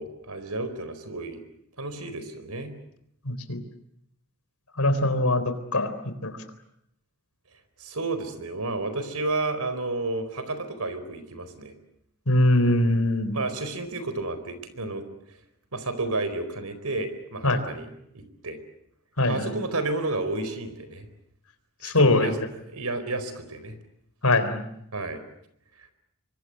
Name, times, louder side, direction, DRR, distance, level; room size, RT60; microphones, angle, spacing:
voice 1, 0.0-1.4 1.8-2.7 7.8-11.7 13.3-15.0 15.7-17.9 18.1-18.6 19.3-21.1 21.8-22.4 22.7-23.8 24.9-25.2 25.8-25.9, right 2 dB, 85° right, 11 dB, 4.4 m, -31 dB
voice 2, 3.3-3.6 4.8-5.4 5.7-5.9 6.2-6.3 12.3-13.4 17.4-17.6 19.2-19.5 21.8-22.3 24.2-24.6, left 1 dB, 80° left, 10 dB, 3.8 m, -21 dB
25.5 x 24.0 x 7.7 m, 0.75 s
head